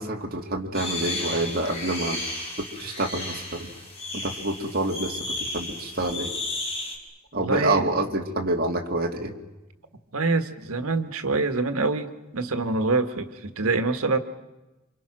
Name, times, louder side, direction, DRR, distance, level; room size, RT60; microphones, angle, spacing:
voice 1, 0.0-2.2 2.8-3.7 4.1-6.3 7.3-9.3, right 2 dB, 45° right, 1 dB, 2.7 m, -27 dB
sound 1, 0.7-7.0, left 2 dB, 30° left, 4.5 m, -33 dB
voice 2, 7.3-7.9 10.1-14.2, right 3 dB, 90° right, 8 dB, 1.6 m, -25 dB
28.0 x 26.5 x 6.2 m, 1.1 s
head